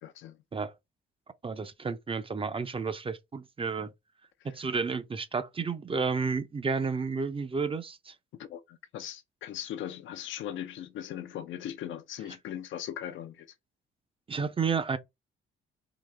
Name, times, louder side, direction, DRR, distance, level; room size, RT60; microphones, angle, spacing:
voice 1, 0.0-0.4 8.3-13.5, left 11 dB, 75° left, 0.7 m, -39 dB
voice 2, 1.4-3.9 4.4-8.1 14.3-15.0, right 5 dB, 25° right, 0.6 m, -31 dB
3.9 x 2.7 x 3.3 m
cardioid pair, 90°, 20 cm